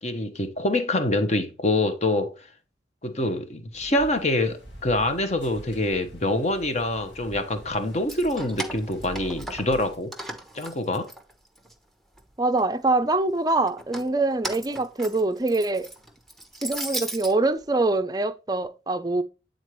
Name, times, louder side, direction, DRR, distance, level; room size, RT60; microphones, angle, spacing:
voice 1, 0.0-2.3 3.0-10.1 10.5-11.1, left 1 dB, 40° left, 0.9 m, -25 dB
sound 1, 3.7-10.0, right 1 dB, 85° left, 2.0 m, -45 dB
Keys jangling, 7.9-9.8 10.1-11.7 12.1-12.9 13.7-17.3, right 1 dB, ahead, 0.9 m, -36 dB
voice 2, 12.4-15.9 16.6-19.2, right 2 dB, 20° right, 0.5 m, -24 dB
9.1 x 3.9 x 3.1 m
head